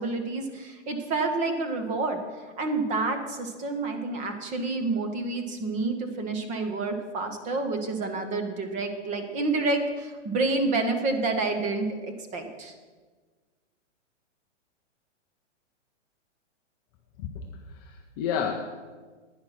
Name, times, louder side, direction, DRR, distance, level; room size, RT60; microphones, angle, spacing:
voice 1, 0.0-2.2 2.6-12.7, right 3 dB, 20° right, 5 dB, 1.2 m, -29 dB
voice 2, 17.7-18.8, left 7 dB, 20° left, 1 dB, 0.5 m, -31 dB
10.5 x 9.7 x 5.8 m, 1.4 s
hypercardioid pair, 150°, 37 cm